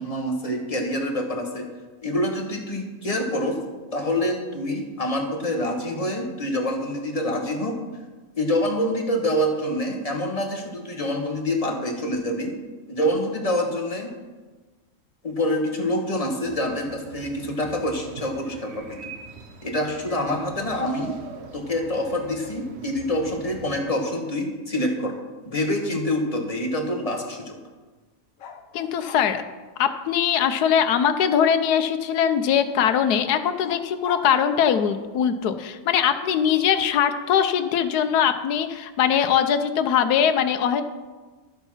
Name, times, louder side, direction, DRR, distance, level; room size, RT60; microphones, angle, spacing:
voice 1, 0.0-1.7 2.0-3.6 3.9-7.8 8.4-12.5 12.9-14.1 15.2-19.1 19.6-21.2 21.5-25.1 25.4-27.6, left 1 dB, 25° left, 2 dB, 1.3 m, -26 dB
sound 1, 16.4-23.8, right 5 dB, 50° right, 1.0 m, -44 dB
sound 2, 28.4-29.3 31.2-31.8 33.6-35.2 36.7-37.9, left 4 dB, 60° left, 1.2 m, -43 dB
voice 2, 28.7-29.4 29.8-40.8, left 8 dB, 90° left, 10 dB, 1.3 m, -21 dB
12.0 x 7.2 x 5.6 m, 1.3 s
omnidirectional pair, 1.6 m